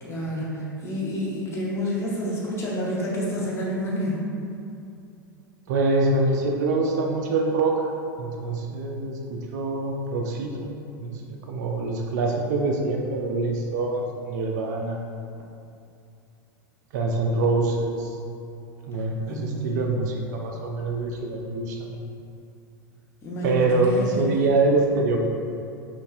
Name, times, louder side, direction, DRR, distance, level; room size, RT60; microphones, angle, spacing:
voice 1, 0.0-4.2 19.3-19.7 23.2-24.3, equal, 25° left, -5 dB, 0.9 m, -29 dB
voice 2, 5.7-7.9 8.2-10.7 11.0-15.1 16.9-18.2 18.8-22.0 23.4-25.2, right 3 dB, 55° right, 1 dB, 0.4 m, -25 dB
5.2 x 2.5 x 2.4 m, 2.6 s
figure-of-eight pair, 85°, 11 cm